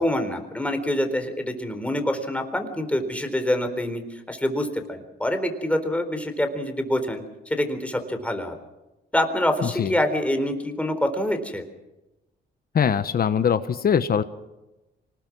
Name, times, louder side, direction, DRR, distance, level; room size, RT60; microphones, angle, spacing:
voice 1, 0.0-8.6 9.1-11.6, left 1 dB, 5° left, 6 dB, 3.9 m, -26 dB
voice 2, 9.6-9.9 12.7-14.2, left 7 dB, 50° left, 12 dB, 1.2 m, -22 dB
25.5 x 20.0 x 6.2 m, 1.0 s
cardioid pair, 90°, 20 cm